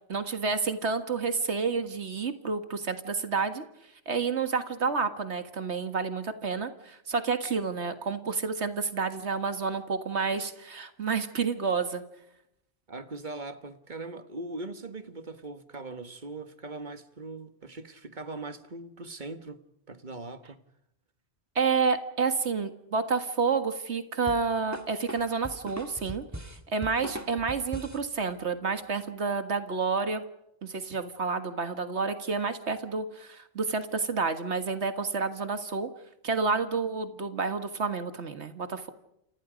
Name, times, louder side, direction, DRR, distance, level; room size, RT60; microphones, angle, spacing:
voice 1, 0.1-3.6 4.1-12.0 21.6-30.2 30.6-35.9 36.2-38.9, right 5 dB, 80° right, 2.0 m, -29 dB
voice 2, 12.9-19.6 19.9-20.6, right 2 dB, 45° right, 1.7 m, -40 dB
sound 1, 24.3-28.1, right 1 dB, 15° right, 2.0 m, -40 dB
29.5 x 27.0 x 5.2 m
omnidirectional pair, 1.1 m